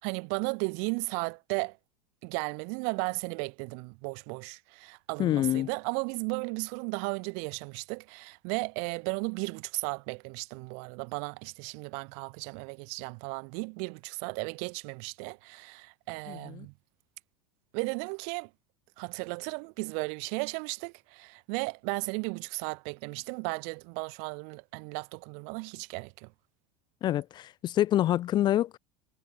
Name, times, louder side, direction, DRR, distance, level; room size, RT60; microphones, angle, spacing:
voice 1, 0.0-1.8 2.2-16.7 17.7-18.5 19.0-26.3, right 40 dB or more, 65° right, 2.3 m, -35 dB
voice 2, 5.2-5.7 16.3-16.7 27.0-28.8, left 13 dB, 35° left, 0.4 m, -27 dB
hypercardioid pair, 100°, 12 cm